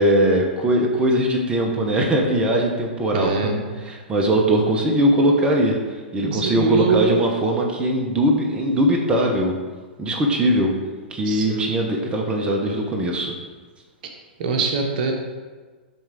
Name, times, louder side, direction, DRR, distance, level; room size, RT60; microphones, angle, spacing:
voice 1, 0.0-3.5 3.9-5.8 6.1-9.6 10.0-10.7 11.1-13.3, right 1 dB, 15° right, 0 dB, 0.9 m, -20 dB
voice 2, 3.1-3.7 6.2-7.2 11.2-11.7 14.4-15.1, right 4 dB, 55° right, 3 dB, 1.0 m, -23 dB
7.0 x 3.4 x 4.8 m, 1.4 s
hypercardioid pair, 110°, 6 cm